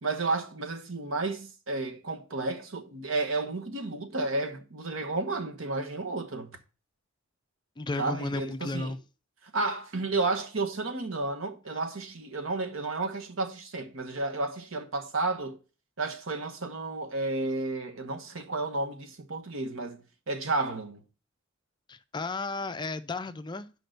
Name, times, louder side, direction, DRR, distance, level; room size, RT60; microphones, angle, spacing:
voice 1, 0.0-6.6 8.0-9.0 9.5-15.6 16.0-20.0 20.3-21.0, right 3 dB, 75° right, 1.2 m, -32 dB
voice 2, 7.8-9.0 21.9-23.7, left 3 dB, 20° left, 0.5 m, -34 dB
6.4 x 5.2 x 6.6 m
head